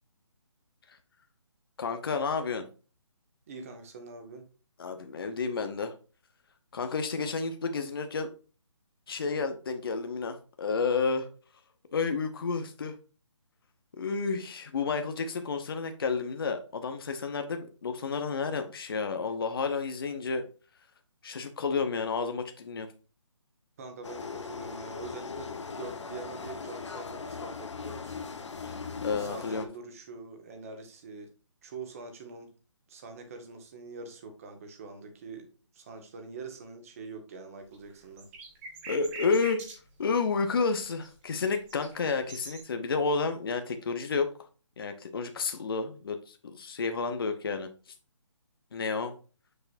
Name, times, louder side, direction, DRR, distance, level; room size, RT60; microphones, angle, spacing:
voice 1, 1.8-2.7 4.8-5.9 6.7-8.3 9.1-11.3 11.9-12.9 14.0-20.4 21.2-22.9 28.6-28.7 29.0-29.7 38.9-39.6 40.0-44.3 44.8-47.7 48.7-49.1, left 4 dB, 50° left, 7 dB, 0.9 m, -31 dB
voice 2, 3.5-4.5 23.8-28.2 29.2-31.3 31.6-32.5 32.9-35.5 35.7-38.3, right 4 dB, 30° right, 5 dB, 1.6 m, -44 dB
sound 1, 24.0-29.7, left 5 dB, 65° left, 1.3 m, -39 dB
sound 2, 37.7-39.8 41.0-41.1 41.4-42.6, right 3 dB, 10° right, 1.3 m, -43 dB
6.7 x 6.6 x 2.7 m, 0.35 s
hypercardioid pair, 165°, 16 cm